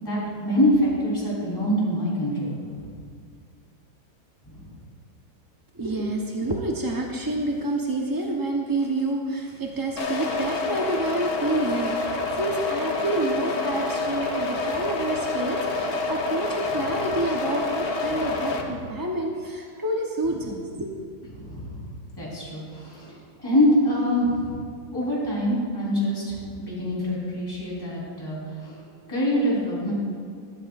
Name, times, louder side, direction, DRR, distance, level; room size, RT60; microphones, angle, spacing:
voice 1, 0.0-2.9 4.5-4.7 18.6-18.7 21.3-21.8 22.2-23.1 23.4-24.6 24.9-28.8 29.1-29.9, equal, 10° left, -7 dB, 4.0 m, -25 dB
voice 2, 5.7-20.9, right 2 dB, 25° right, 0 dB, 0.4 m, -28 dB
sound 1, 10.0-18.6, left 3 dB, 55° left, 1.5 m, -27 dB
21.5 x 12.0 x 2.5 m, 2.2 s
omnidirectional pair, 2.0 m